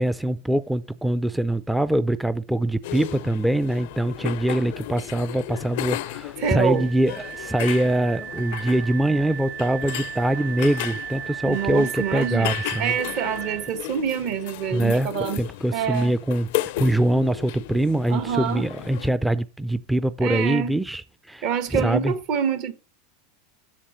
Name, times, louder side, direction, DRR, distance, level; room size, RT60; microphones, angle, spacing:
voice 1, 0.0-13.0 14.7-15.1 15.4-16.5 16.8-22.1, right 1 dB, 5° right, 0.4 m, -23 dB
sound 1, 2.8-19.1, left 16 dB, 65° left, 0.4 m, -35 dB
voice 2, 6.4-6.9 11.4-12.5 12.8-15.4 15.7-16.1 18.1-18.7 20.2-20.8 21.4-22.7, right 8 dB, 55° right, 1.4 m, -26 dB
Wind instrument woodwind instrument, 6.7-13.8, right 10 dB, 40° right, 1.7 m, -35 dB
7.4 x 6.7 x 7.9 m
hypercardioid pair, 115°, 0 cm